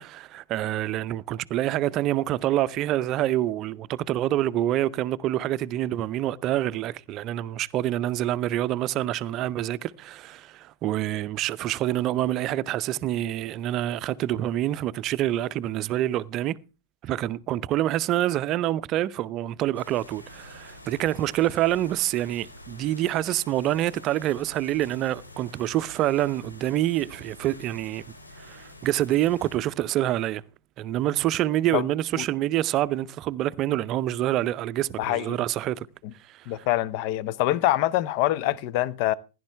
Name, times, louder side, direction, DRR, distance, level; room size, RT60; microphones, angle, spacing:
voice 1, 0.0-16.6 17.0-28.0 28.4-30.4 30.8-35.9 36.3-36.5, right 13 dB, 35° right, 0.6 m, -26 dB
sound 1, 19.7-29.6, left 1 dB, 90° left, 2.7 m, -47 dB
voice 2, 35.0-35.4 36.5-39.1, left 14 dB, 45° left, 0.8 m, -25 dB
15.5 x 11.0 x 3.3 m
figure-of-eight pair, 105°, 0 cm